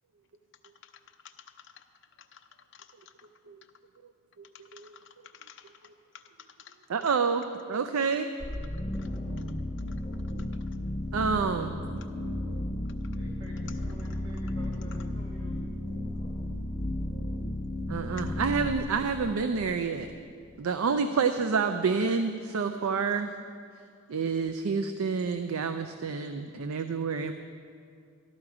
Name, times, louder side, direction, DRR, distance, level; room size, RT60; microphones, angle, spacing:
voice 1, 0.8-1.8 2.2-3.3 4.5-5.9 6.1-6.8 9.0-9.1 9.9-10.0 12.0-12.1 13.7-13.8, left 8 dB, 55° left, 6 dB, 0.7 m, -53 dB
voice 2, 6.9-8.3 11.1-11.7 17.9-20.1 20.6-23.3 24.1-27.3, right 5 dB, 80° right, 8 dB, 0.5 m, -28 dB
sound 1, 8.4-20.2, left 1 dB, 25° left, 1.1 m, -34 dB
voice 3, 13.1-15.6, right 2 dB, 50° right, -3 dB, 1.3 m, -51 dB
13.0 x 12.5 x 4.8 m, 2.3 s
head